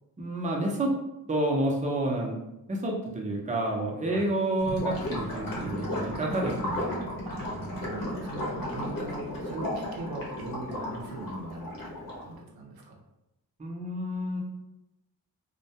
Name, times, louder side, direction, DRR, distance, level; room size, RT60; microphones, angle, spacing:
voice 1, 0.2-0.9 1.3-2.4 2.7-7.0 13.6-14.4, right 1 dB, 20° right, -2 dB, 0.6 m, -29 dB
Gurgling / Liquid, 4.6-12.3, left 1 dB, 65° left, 0.9 m, -34 dB
voice 2, 7.2-13.0, right 2 dB, 80° right, 0 dB, 0.5 m, -40 dB
2.2 x 2.2 x 2.7 m, 0.91 s
cardioid pair, 70°, 37 cm